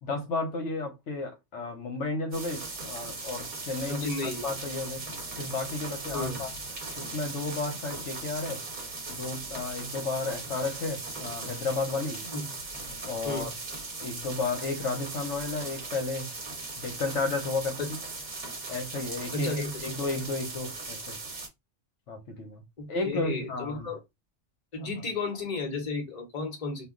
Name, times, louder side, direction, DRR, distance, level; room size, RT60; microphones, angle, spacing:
voice 1, 0.0-4.1 4.4-5.0 5.4-6.5 7.0-8.6 9.1-12.2 13.1-13.5 14.0-16.3 16.8-17.9 18.7-21.2 22.1-22.6 22.9-23.9 24.8-24.9, left 3 dB, 75° left, 1.0 m, -33 dB
sound 1, 2.3-21.5, right 3 dB, 45° right, 0.9 m, -38 dB
voice 2, 3.9-4.5 6.1-6.4 12.2-12.5 13.2-13.5 17.8-17.9 19.3-19.8 22.8-24.0 24.7-26.9, left 3 dB, 35° left, 0.9 m, -33 dB
2.3 x 2.3 x 3.5 m
omnidirectional pair, 1.2 m